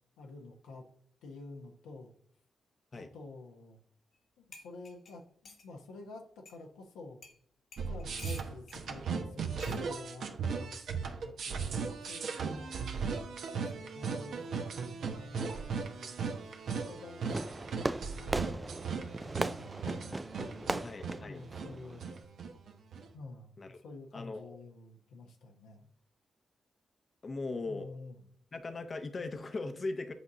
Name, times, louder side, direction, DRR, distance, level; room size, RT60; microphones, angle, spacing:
voice 1, 0.2-0.8 1.2-2.1 2.9-3.8 4.4-7.2 7.9-12.7 13.5-16.3 16.9-17.4 18.1-18.4 19.2-20.7 21.2-22.0 23.1-25.9 27.6-28.2, left 3 dB, 90° left, 2 dB, 1.0 m, -49 dB
sound 1, 4.1-4.2 4.5-5.7 6.5-6.6 7.2-7.4 7.7-8.8 9.6-9.8 10.9-11.2, left 3 dB, 65° left, 1.2 m, -52 dB
sound 2, 7.8-23.1, right 5 dB, 75° right, 0.8 m, -37 dB
Fireworks, 17.2-22.2, right 2 dB, 20° right, 0.3 m, -38 dB
voice 2, 20.8-21.4 23.6-24.6 27.2-27.9 28.5-30.1, left 3 dB, 45° left, 7 dB, 0.7 m, -39 dB
8.1 x 2.7 x 6.0 m, 0.63 s
supercardioid pair, 45°, 0 cm